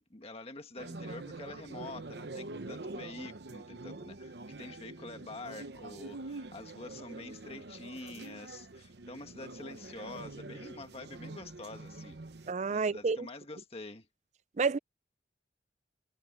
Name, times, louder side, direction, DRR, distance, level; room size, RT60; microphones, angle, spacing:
voice 1, 0.0-12.2 12.7-14.1, left 2 dB, 35° left, 1.6 m, -47 dB
sound 1, 0.8-12.5, right 2 dB, 65° right, 0.9 m, -45 dB
voice 2, 12.5-13.3 14.6-14.8, right 4 dB, 40° right, 0.5 m, -29 dB
head